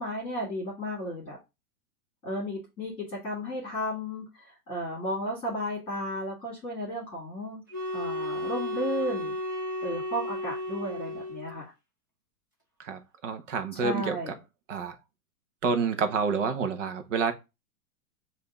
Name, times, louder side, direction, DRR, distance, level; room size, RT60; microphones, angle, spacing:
voice 1, 0.0-1.4 2.2-7.6 7.9-9.4 9.8-11.7 13.8-14.3, equal, 10° left, 1.9 m, -34 dB
sound 1, 7.7-11.6, left 1 dB, 15° right, 0.4 m, -33 dB
voice 2, 12.8-14.4 14.7-15.0 15.6-17.3, right 5 dB, 50° right, 1.1 m, -28 dB
5.0 x 2.9 x 3.6 m
hypercardioid pair, 160°, 46 cm